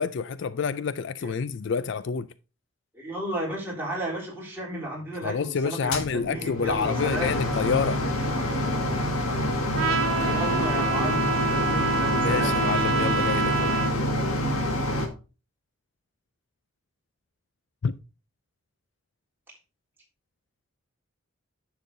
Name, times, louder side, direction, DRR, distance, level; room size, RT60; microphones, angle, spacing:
voice 1, 0.0-2.3 5.2-8.0 12.2-13.7 17.8-18.0, left 6 dB, 55° left, 0.4 m, -28 dB
voice 2, 2.9-7.4 10.2-12.5 19.5-19.6, right 1 dB, 10° right, 3.5 m, -33 dB
sound 1, 5.9-15.1, left 1 dB, 90° left, 1.9 m, -27 dB
Trumpet, 9.8-14.0, right 4 dB, 75° right, 1.0 m, -27 dB
10.5 x 7.0 x 2.7 m
head